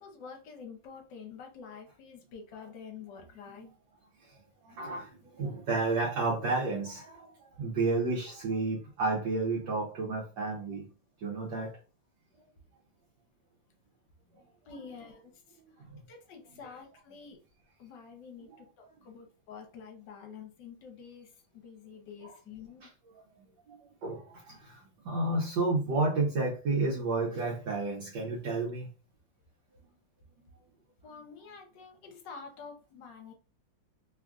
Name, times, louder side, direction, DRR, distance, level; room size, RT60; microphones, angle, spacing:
voice 1, 0.0-3.7 14.7-15.6 16.1-17.4 17.8-22.9 31.0-33.3, left 6 dB, 70° left, 1.3 m, -48 dB
voice 2, 4.6-7.3 7.6-10.9 11.2-11.7 18.5-18.6 23.7-28.9 30.4-30.5 31.2-31.3, right 3 dB, 70° right, 1.4 m, -31 dB
3.4 x 2.4 x 2.3 m
omnidirectional pair, 2.1 m